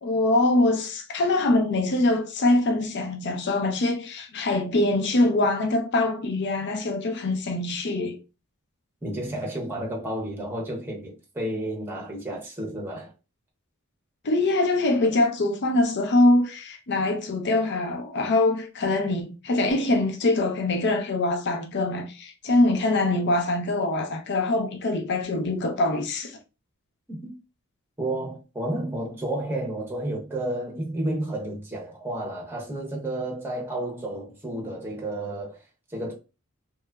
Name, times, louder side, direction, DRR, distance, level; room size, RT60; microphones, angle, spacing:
voice 1, 0.0-8.2 14.2-26.4, left 2 dB, 50° left, 0.5 m, -23 dB
voice 2, 9.0-13.1 27.1-27.3 28.0-35.6 35.9-36.1, right 1 dB, 10° right, 0.7 m, -31 dB
3.0 x 2.3 x 2.2 m
head